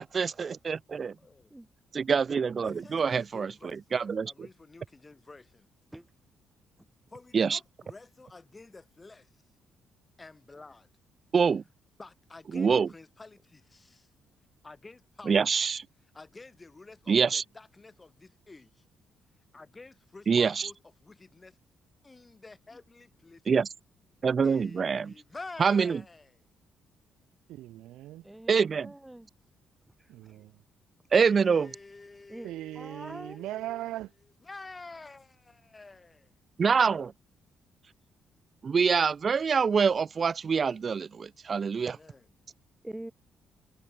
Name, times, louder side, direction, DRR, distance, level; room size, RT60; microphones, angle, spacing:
voice 1, 0.0-1.1 1.9-3.5 3.9-4.3 7.3-7.6 11.3-11.6 12.5-12.9 15.3-15.8 17.1-17.4 20.3-20.7 23.5-23.7 24.2-25.1 25.6-26.0 28.5-28.9 31.1-31.7 36.6-37.1 38.6-42.0, right 6 dB, 40° right, 0.8 m, -25 dB
voice 2, 2.4-5.7 7.1-9.3 10.2-10.9 12.0-14.1 14.6-15.4 16.1-18.8 19.5-21.6 22.0-23.4 24.4-26.5 31.2-33.8 34.4-36.3 40.7-40.9 41.5-42.3, left 3 dB, 25° left, 7.2 m, -49 dB
voice 3, 27.5-28.3 30.1-30.6 32.4-34.1, right 15 dB, 90° right, 4.1 m, -39 dB
voice 4, 28.2-29.3 30.0-30.5 32.3-33.4 42.8-43.1, right 1 dB, 10° right, 1.5 m, -45 dB
cardioid pair, 90°, 0 cm